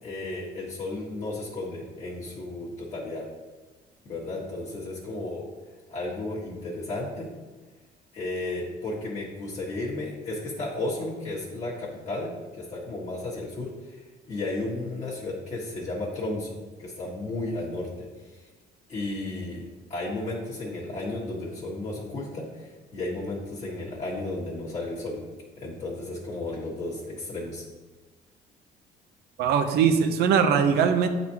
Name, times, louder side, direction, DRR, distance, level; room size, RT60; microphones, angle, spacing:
voice 1, 0.0-3.3 4.0-5.5 5.9-7.3 8.1-18.1 18.3-18.4 18.9-19.6 19.9-25.2 25.6-27.6, left 2 dB, 40° left, -7 dB, 1.5 m, -33 dB
voice 2, 29.4-31.1, right 7 dB, 75° right, 7 dB, 0.6 m, -21 dB
8.8 x 4.1 x 2.9 m, 1.3 s
cardioid pair, 110°, 17 cm